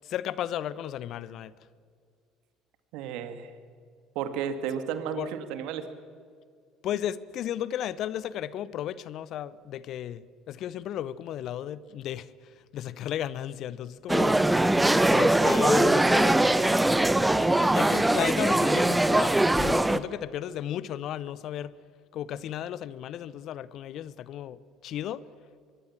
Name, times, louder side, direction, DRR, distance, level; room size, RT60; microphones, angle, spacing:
voice 1, 0.0-1.5 5.2-5.3 6.8-12.3 12.7-14.4 15.1-16.7 17.5-21.7 22.1-25.2, left 11 dB, 55° left, 19 dB, 0.9 m, -34 dB
voice 2, 2.9-3.5 4.2-5.9, right 8 dB, 60° right, 10 dB, 2.0 m, -33 dB
sound 1, 14.1-20.0, right 1 dB, 10° right, 1.0 m, -22 dB
23.5 x 22.5 x 7.5 m, 2.1 s
figure-of-eight pair, 60°, 0 cm